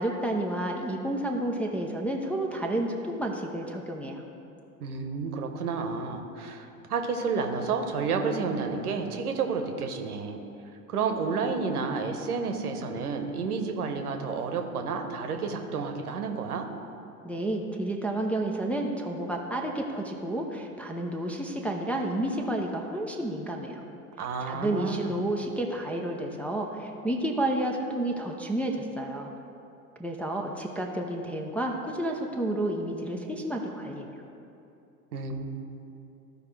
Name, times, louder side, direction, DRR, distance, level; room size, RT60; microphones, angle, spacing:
voice 1, 0.0-4.2 17.2-23.8 24.4-29.3 30.0-34.1, right 1 dB, 5° left, -1 dB, 0.5 m, -30 dB
voice 2, 4.8-10.4 10.9-16.7 24.2-25.2 35.1-35.4, right 5 dB, 75° right, 5 dB, 1.0 m, -30 dB
14.0 x 4.9 x 3.3 m, 2.7 s
figure-of-eight pair, 85°, 45 cm